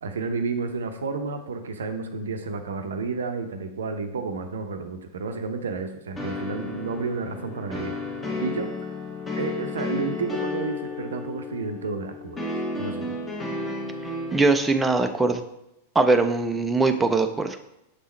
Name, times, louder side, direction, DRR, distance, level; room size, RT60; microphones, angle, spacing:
voice 1, 0.0-8.0 8.4-8.9 9.3-12.4 12.7-13.2, right 4 dB, 65° right, 8 dB, 0.6 m, -31 dB
sound 1, 6.2-14.4, left 3 dB, 15° left, 1.3 m, -32 dB
voice 2, 14.3-15.4 15.9-17.6, right 3 dB, 10° right, 6 dB, 0.4 m, -21 dB
6.7 x 3.7 x 4.2 m, 0.86 s
figure-of-eight pair, 95°, 0 cm